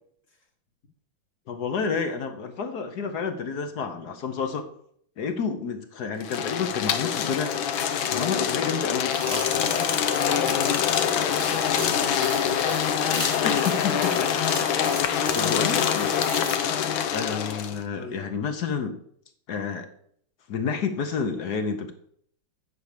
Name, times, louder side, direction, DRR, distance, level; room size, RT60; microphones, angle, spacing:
voice 1, 1.5-4.7 5.2-7.5 8.1-9.7 13.4-14.5 14.8-16.1 17.1-19.0 19.5-19.9 20.5-21.9, left 5 dB, 60° left, 7 dB, 1.3 m, -30 dB
sound 1, 6.2-17.8, left 8 dB, 80° left, 1.7 m, -25 dB
sound 2, 9.1-16.6, right 2 dB, 90° right, 3.7 m, -38 dB
voice 2, 9.6-10.4 10.6-11.4 11.7-13.2 17.9-18.3, left 2 dB, 40° left, 3 dB, 1.6 m, -41 dB
9.4 x 5.6 x 6.6 m, 0.66 s
omnidirectional pair, 2.2 m